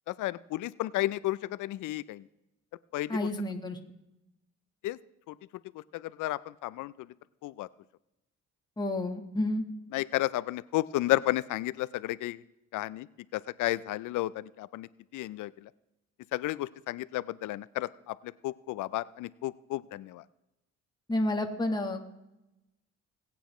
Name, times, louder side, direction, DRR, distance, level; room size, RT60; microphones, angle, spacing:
voice 1, 0.1-2.3 2.9-3.3 4.8-5.0 5.3-5.4 5.7-7.1 7.4-7.7 9.9-12.4 12.7-13.1 13.3-15.7 16.3-20.2, left 16 dB, 80° left, 19 dB, 0.5 m, -32 dB
voice 2, 3.1-3.8 8.8-9.6 21.1-22.1, left 1 dB, 15° left, 3 dB, 1.3 m, -30 dB
21.0 x 8.6 x 3.1 m, 0.94 s
cardioid pair, 90°, 30 cm